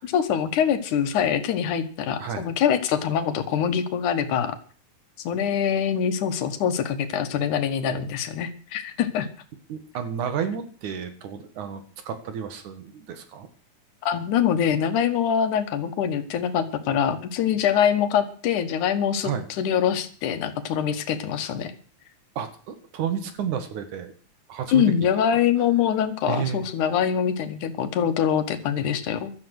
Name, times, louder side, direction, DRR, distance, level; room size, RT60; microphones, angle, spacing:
voice 1, 0.0-4.6 5.2-9.3 14.0-21.7 24.7-29.3, left 8 dB, 90° left, 9 dB, 2.8 m, -24 dB
voice 2, 9.7-13.5 19.2-19.5 22.4-24.1 24.5-25.3 26.3-26.6, right 8 dB, 80° right, 9 dB, 3.2 m, -31 dB
16.0 x 12.5 x 6.4 m, 0.42 s
omnidirectional pair, 3.4 m